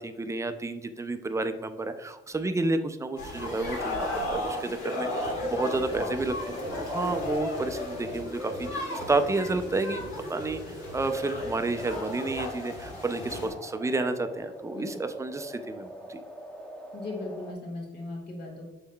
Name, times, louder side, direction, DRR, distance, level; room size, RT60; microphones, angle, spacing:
voice 1, 0.0-10.6 10.9-16.2, right 2 dB, 15° right, 8 dB, 0.4 m, -30 dB
sound 1, 3.2-13.5, left 1 dB, 80° left, 1.5 m, -34 dB
sound 2, 8.0-17.5, right 1 dB, 5° left, 0.8 m, -44 dB
voice 2, 16.9-18.7, left 2 dB, 55° left, -1 dB, 1.5 m, -38 dB
6.2 x 3.6 x 2.2 m, 1.1 s
cardioid pair, 90°, 20 cm